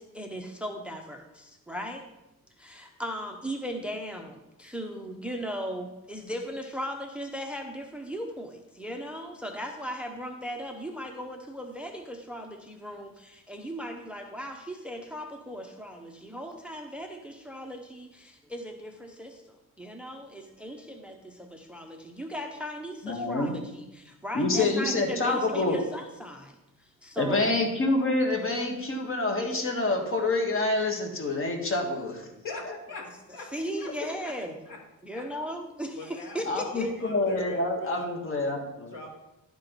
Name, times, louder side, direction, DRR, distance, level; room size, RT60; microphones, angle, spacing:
voice 1, 0.0-2.1 2.6-27.5 33.5-34.5 35.0-37.0, equal, 5° right, 3 dB, 0.7 m, -37 dB
voice 2, 23.0-23.5 24.3-25.8 27.2-32.3 32.7-32.8 36.4-38.9, left 2 dB, 35° left, 2 dB, 1.6 m, -27 dB
voice 3, 32.4-33.1 33.3-33.5 33.8-33.9 34.2-34.3 34.7-34.8 35.1-35.2 36.0-38.1 38.4-38.5 38.9-39.1, left 3 dB, 65° left, 0 dB, 2.4 m, -42 dB
11.5 x 4.5 x 5.2 m, 0.94 s
cardioid pair, 120°, 35 cm